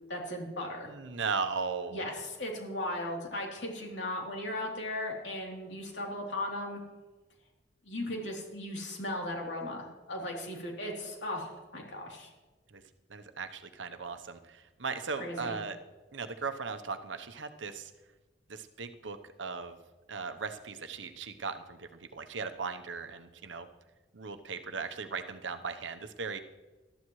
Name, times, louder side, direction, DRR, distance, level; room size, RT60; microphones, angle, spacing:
voice 1, 0.1-0.9 1.9-6.8 7.8-12.3 15.2-15.6, left 1 dB, 70° left, -1 dB, 3.3 m, -37 dB
voice 2, 0.9-2.0 12.7-12.8 13.1-15.8 16.1-17.9 18.5-19.8 20.1-23.7 24.1-26.4, right 5 dB, 85° right, 8 dB, 0.9 m, -37 dB
20.0 x 13.0 x 3.2 m, 1.2 s
head